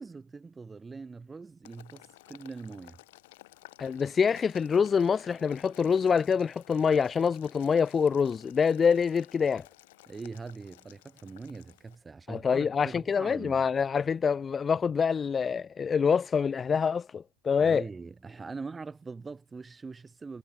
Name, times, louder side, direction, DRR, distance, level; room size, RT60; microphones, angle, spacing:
voice 1, 0.0-3.0 10.1-13.6 17.6-20.4, right 4 dB, 10° right, 0.9 m, -42 dB
Boiling, 1.6-12.0, left 19 dB, 75° left, 2.9 m, -55 dB
voice 2, 3.8-9.7 12.3-17.8, left 6 dB, 20° left, 0.5 m, -26 dB
supercardioid pair, 155°, 0 cm